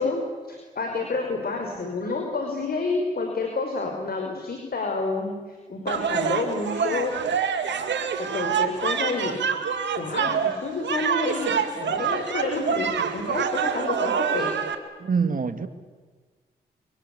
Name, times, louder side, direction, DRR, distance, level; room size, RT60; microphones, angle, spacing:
voice 1, 0.0-7.2 8.3-9.4 10.0-14.5, left 3 dB, 50° left, 3 dB, 5.3 m, -29 dB
sound 1, 5.9-14.7, right 7 dB, 65° right, 2.5 m, -26 dB
voice 2, 15.0-15.7, right 5 dB, 45° right, 10 dB, 2.6 m, -24 dB
26.0 x 24.0 x 8.6 m, 1.4 s
supercardioid pair, 50°, 20 cm